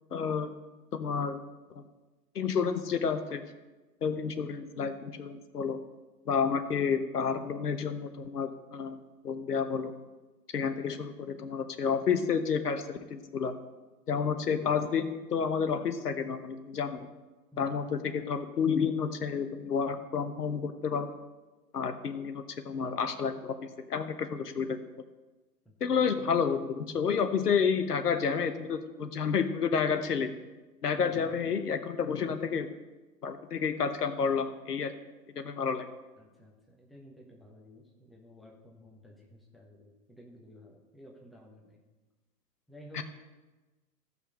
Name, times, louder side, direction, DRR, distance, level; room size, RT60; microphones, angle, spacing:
voice 1, 0.1-0.5 0.9-1.4 1.8-1.9 2.3-3.4 4.0-5.8 6.3-9.0 9.2-9.9 10.5-13.5 14.1-17.1 17.6-21.1 21.7-23.5 23.9-24.7 25.8-30.3 30.8-32.7 33.2-34.9 35.3-35.9 42.9-43.0, left 6 dB, 70° left, 9 dB, 1.1 m, -30 dB
voice 2, 36.2-41.8 42.7-43.0, equal, ahead, -1 dB, 1.1 m, -53 dB
15.5 x 5.6 x 5.4 m, 1.2 s
figure-of-eight pair, 115°, 49 cm